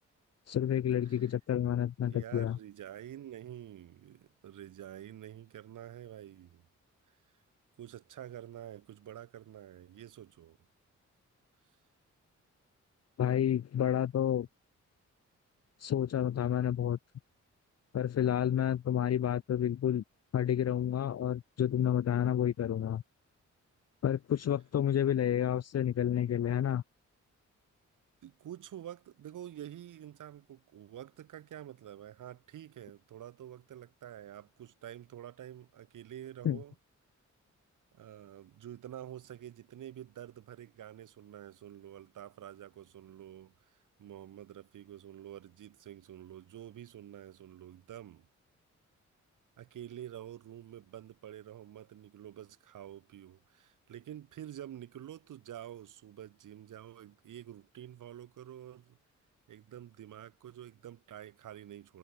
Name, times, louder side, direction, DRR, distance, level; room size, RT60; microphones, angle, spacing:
voice 1, 0.5-2.6 13.2-14.5 15.8-17.0 17.9-20.0 20.3-23.0 24.0-26.8 36.4-36.6, left 10 dB, 55° left, 0.7 m, -30 dB
voice 2, 1.0-1.4 2.1-6.6 7.8-10.6 28.2-36.7 37.9-48.3 49.6-59.0 59.5-62.0, right 11 dB, 85° right, 1.6 m, -48 dB
cardioid pair, 75°, 30 cm